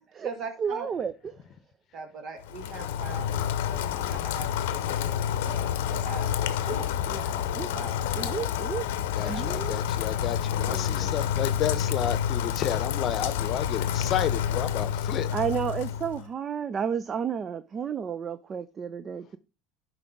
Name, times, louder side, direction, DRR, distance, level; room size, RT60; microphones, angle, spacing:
voice 1, 0.0-0.9 1.9-6.3 6.6-7.3 7.7-8.4 9.2-9.4, right 4 dB, 55° right, 2.0 m, -41 dB
voice 2, 0.6-1.3 7.1-8.9 9.3-9.8 10.7-11.2 15.3-19.4, right 7 dB, 35° right, 0.5 m, -32 dB
Rain, 2.4-16.2, left 9 dB, 85° left, 0.6 m, -29 dB
voice 3, 9.1-15.3, left 10 dB, 50° left, 0.7 m, -31 dB
10.5 x 4.7 x 3.7 m
supercardioid pair, 95°, 0 cm